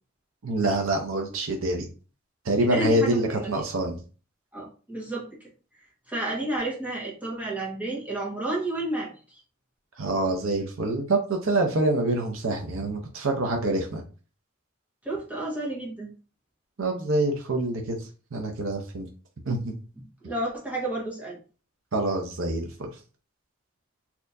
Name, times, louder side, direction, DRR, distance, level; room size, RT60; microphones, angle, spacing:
voice 1, 0.4-1.9 2.4-4.0 10.0-14.0 16.8-18.0 18.3-19.1 19.5-19.7 21.9-22.9, right 2 dB, 85° right, 3 dB, 0.7 m, -26 dB
voice 2, 2.6-3.5 4.5-5.3 6.1-9.1 15.0-16.1 20.0-21.4, right 2 dB, 10° right, -4 dB, 1.4 m, -31 dB
4.3 x 2.8 x 2.6 m, 0.36 s
head